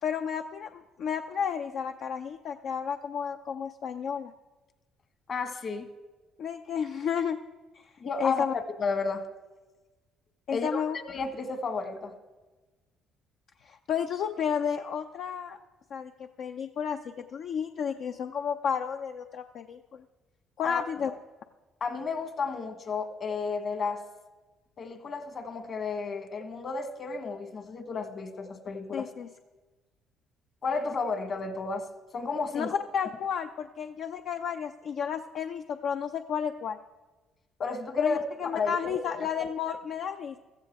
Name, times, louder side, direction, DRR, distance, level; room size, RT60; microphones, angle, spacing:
voice 1, 0.0-4.3 6.4-7.4 7.7-7.9 8.2-8.5 10.5-11.0 13.6-15.6 15.9-20.0 20.6-21.1 28.9-29.3 32.5-36.8 38.0-40.4, left 7 dB, 65° left, 6 dB, 0.6 m, -32 dB
voice 2, 5.3-5.9 8.0-9.3 10.5-10.8 11.1-12.1 20.6-21.1 21.8-24.0 24.8-29.1 30.6-31.8 32.1-32.7 37.6-39.0, left 4 dB, 50° left, 8 dB, 1.6 m, -32 dB
15.0 x 14.0 x 3.6 m, 1.2 s
supercardioid pair, 70°, 0 cm